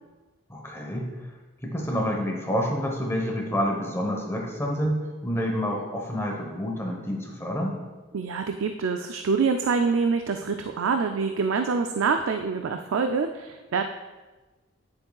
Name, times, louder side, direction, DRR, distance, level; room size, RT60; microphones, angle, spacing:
voice 1, 0.5-1.1 1.6-7.8, equal, 10° left, 0 dB, 1.1 m, -28 dB
voice 2, 8.1-13.8, right 5 dB, 70° right, 6 dB, 0.4 m, -25 dB
9.7 x 7.6 x 2.4 m, 1.2 s
head